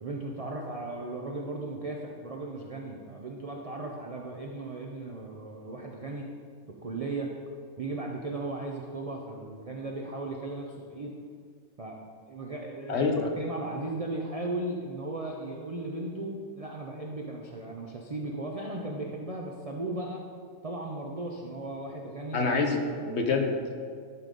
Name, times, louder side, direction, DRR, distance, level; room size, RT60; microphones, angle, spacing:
voice 1, 0.0-6.2 6.7-7.3 7.8-11.1 11.8-12.0 12.3-20.2 20.6-22.5 22.9-23.3, right 2 dB, 70° right, 0 dB, 0.3 m, -36 dB
voice 2, 12.9-13.3 22.3-22.8 23.1-23.8, left 4 dB, 55° left, 3 dB, 0.9 m, -26 dB
10.5 x 3.8 x 5.2 m, 2.1 s
omnidirectional pair, 1.6 m